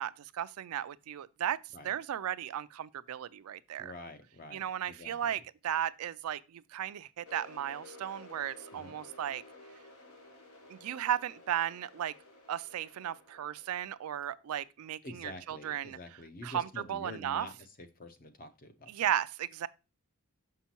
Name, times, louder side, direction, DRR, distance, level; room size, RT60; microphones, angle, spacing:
voice 1, 0.0-1.6 1.8-3.9 4.5-9.4 10.7-12.1 12.5-16.0 16.4-17.5 18.9-19.7, right 10 dB, 80° right, 0.3 m, -35 dB
voice 2, 3.8-5.4 8.7-8.9 15.0-18.9, left 1 dB, 40° left, 0.7 m, -47 dB
sound 1, 7.3-14.9, left 2 dB, 80° left, 1.3 m, -54 dB
6.0 x 5.6 x 2.9 m
head